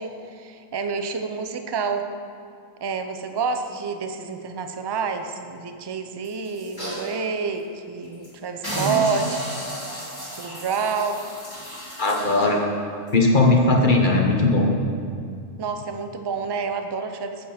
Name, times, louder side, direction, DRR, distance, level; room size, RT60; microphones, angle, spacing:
voice 1, 0.0-2.1 2.8-9.5 10.4-11.2 15.6-17.5, right 5 dB, 35° right, 6 dB, 0.4 m, -28 dB
sound 1, 6.2-7.1 7.6-7.7 8.0-8.3 8.6-12.5 13.1-13.2, right 1 dB, 15° left, 2.5 m, -32 dB
voice 2, 12.0-12.7 13.1-14.7, left 2 dB, 40° left, 0 dB, 1.2 m, -18 dB
14.5 x 7.5 x 4.3 m, 2.3 s
omnidirectional pair, 1.3 m